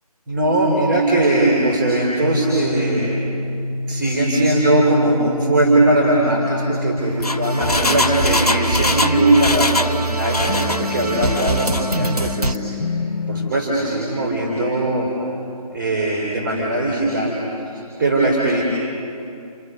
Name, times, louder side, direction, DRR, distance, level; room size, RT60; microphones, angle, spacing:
voice 1, 0.3-3.2 3.9-12.9 13.3-15.1 15.7-18.6, right 2 dB, 10° right, -3 dB, 3.2 m, -20 dB
sound 1, 2.2-13.5, left 1 dB, 45° left, 1.1 m, -27 dB
Engine, 7.0-10.0 10.2-10.8 11.3-11.8 12.2-12.3, left 2 dB, 75° left, 1.0 m, -22 dB
sound 2, 7.4-12.6, right 2 dB, 80° right, 1.1 m, -26 dB
29.0 x 28.0 x 5.5 m, 2.6 s
figure-of-eight pair, 155°, 20 cm